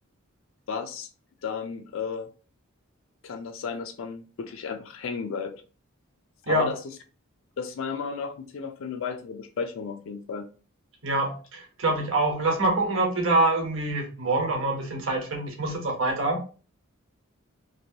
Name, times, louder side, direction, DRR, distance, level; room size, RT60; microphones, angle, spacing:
voice 1, 0.7-1.1 1.4-2.3 3.2-5.5 6.5-7.0 7.6-10.5, left 5 dB, 65° left, 7 dB, 0.3 m, -33 dB
voice 2, 11.0-16.4, right 2 dB, 65° right, 2 dB, 1.0 m, -25 dB
3.0 x 2.5 x 2.8 m, 0.36 s
head